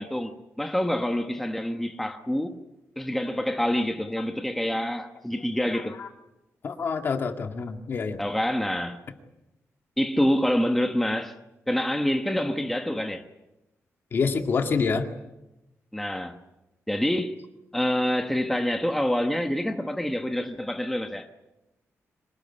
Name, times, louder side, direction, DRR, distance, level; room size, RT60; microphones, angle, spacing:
voice 1, 0.0-2.6 3.0-5.9 8.2-9.0 10.0-11.3 11.7-13.2 15.9-16.4 16.9-17.4 17.7-21.3, left 1 dB, 5° left, 1.1 m, -26 dB
voice 2, 6.6-8.2 14.1-15.1, left 5 dB, 45° left, 2.0 m, -27 dB
25.5 x 19.0 x 9.7 m
wide cardioid pair, 175°, 5 cm